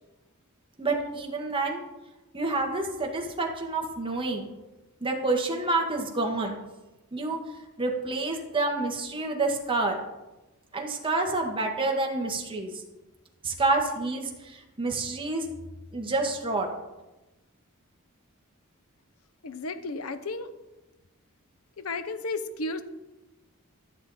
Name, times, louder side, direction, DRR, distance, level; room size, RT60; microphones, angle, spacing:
voice 1, 0.8-1.8 2.3-4.5 5.0-6.6 7.1-7.4 7.8-10.0 10.7-12.8 13.4-15.5 15.9-16.7, right 3 dB, 25° right, 1 dB, 1.6 m, -28 dB
voice 2, 19.4-20.5 21.8-22.8, left 3 dB, 75° left, 11 dB, 0.8 m, -33 dB
13.5 x 7.2 x 4.2 m, 1.1 s
head